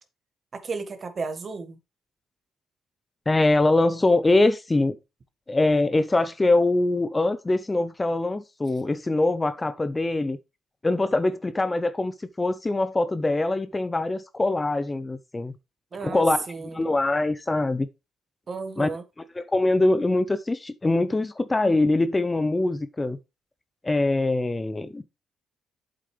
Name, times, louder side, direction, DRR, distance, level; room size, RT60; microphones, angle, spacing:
voice 1, 0.5-1.8 15.9-16.8 18.5-19.0, right 4 dB, 40° right, 1.8 m, -33 dB
voice 2, 3.3-5.0 5.5-10.4 10.8-15.5 16.0-17.9 18.8-18.9 19.4-23.2 23.8-25.0, left 2 dB, 20° left, 0.7 m, -23 dB
8.1 x 7.7 x 3.4 m
cardioid pair, 90°, 0 cm